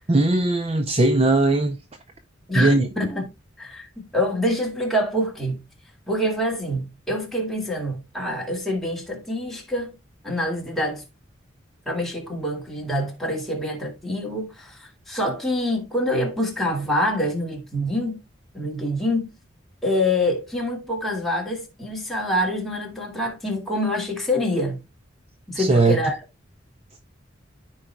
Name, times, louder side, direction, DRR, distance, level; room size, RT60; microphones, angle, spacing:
voice 1, 0.1-1.8 2.6-2.9 25.6-26.0, right 2 dB, 30° right, 0.5 m, -19 dB
voice 2, 2.5-3.3 3.6-5.6 6.1-10.0 10.2-11.0 11.9-18.2 18.5-19.3 19.8-24.8 25.5-26.2, left 1 dB, ahead, 2.1 m, -26 dB
14.0 x 4.8 x 2.3 m
head